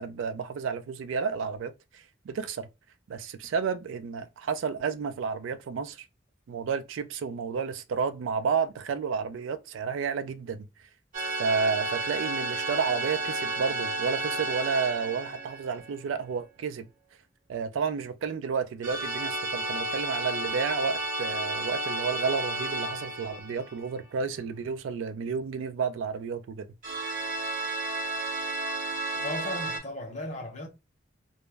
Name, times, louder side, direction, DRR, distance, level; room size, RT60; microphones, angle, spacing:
voice 1, 0.0-2.7 3.1-6.0 6.5-10.7 11.4-16.9 17.5-26.6, right 5 dB, 90° right, 0.3 m, -31 dB
sound 1, 11.1-16.1 18.8-24.0 26.8-29.8, right 2 dB, 40° right, 0.7 m, -32 dB
voice 2, 29.1-30.7, left 1 dB, 35° left, 0.6 m, -36 dB
2.0 x 2.0 x 3.2 m
head